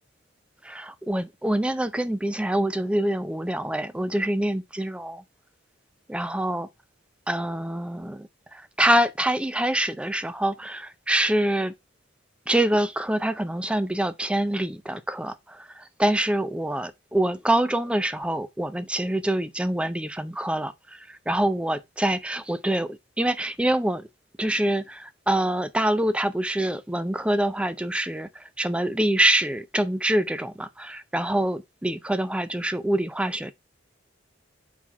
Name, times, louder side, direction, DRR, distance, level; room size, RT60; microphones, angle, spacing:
voice 1, 0.6-5.2 6.1-6.7 7.3-11.7 12.5-24.1 24.4-33.5, right 1 dB, 5° right, 0.4 m, -25 dB
4.4 x 4.1 x 5.4 m
head